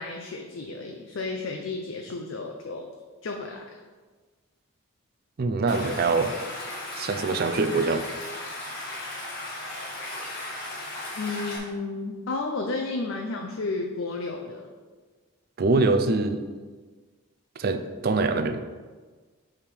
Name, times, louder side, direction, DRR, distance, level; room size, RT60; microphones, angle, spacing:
voice 1, 0.0-2.9 3.2-3.8 11.1-14.7, left 3 dB, 65° left, 2 dB, 0.5 m, -32 dB
voice 2, 5.4-6.3 6.9-8.0 15.6-16.4 17.6-18.6, right 3 dB, 45° right, 8 dB, 0.4 m, -24 dB
Stream, 5.7-11.6, left 1 dB, 45° left, 1.4 m, -36 dB
6.6 x 3.6 x 4.4 m, 1.4 s
head